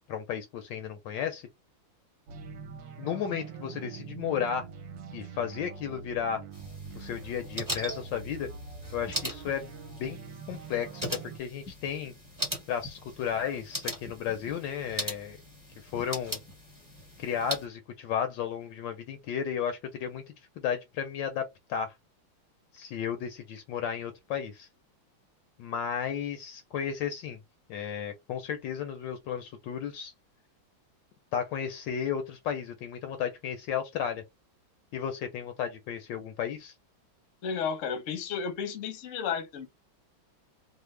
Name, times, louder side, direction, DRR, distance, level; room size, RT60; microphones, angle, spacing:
voice 1, 0.1-1.5 3.0-4.7 5.1-6.4 6.9-8.5 8.9-9.7 10.0-10.2 10.5-12.1 12.7-15.4 15.8-16.4 17.2-20.2 20.6-21.9 22.7-24.7 25.6-27.4 27.7-30.1 31.3-34.2 34.9-36.7, left 8 dB, 75° left, 1.2 m, -33 dB
sound 1, 2.3-11.4, right 5 dB, 70° right, 1.3 m, -44 dB
sound 2, 6.5-17.6, right 1 dB, 15° right, 0.9 m, -39 dB
voice 2, 37.4-39.7, left 6 dB, 55° left, 0.9 m, -33 dB
3.3 x 2.1 x 3.2 m
omnidirectional pair, 2.2 m